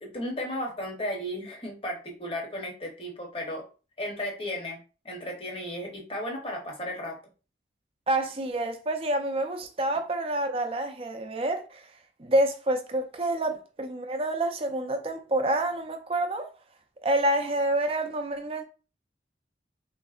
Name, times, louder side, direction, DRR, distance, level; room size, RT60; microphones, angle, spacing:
voice 1, 0.0-3.7 4.0-4.8 5.0-7.2, left 1 dB, 30° left, 0.8 m, -34 dB
voice 2, 8.1-11.9 12.2-16.5 17.0-18.6, right 1 dB, 30° right, 0.4 m, -28 dB
3.5 x 2.5 x 2.4 m
head